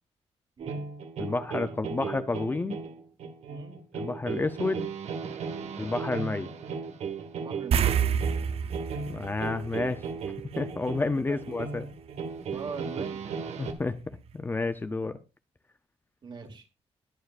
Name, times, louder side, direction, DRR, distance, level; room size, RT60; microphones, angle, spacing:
sound 1, 0.6-13.7, right 5 dB, 80° right, 1.7 m, -36 dB
voice 1, 1.2-2.8 3.9-4.9 5.8-6.5 9.1-10.0 10.6-11.9 13.6-15.2, left 3 dB, 20° left, 10 dB, 0.6 m, -30 dB
voice 2, 3.5-3.8 5.6-5.8 7.3-8.0 11.3-11.7 12.5-13.2 16.2-16.7, right 4 dB, 45° right, 5 dB, 2.4 m, -42 dB
sound 2, 7.7-10.5 10.8-11.0 13.9-14.0 14.3-14.4, right 8 dB, 60° right, 0.7 m, -28 dB
20.5 x 7.0 x 2.5 m, 0.29 s
wide cardioid pair, 170°, 11 cm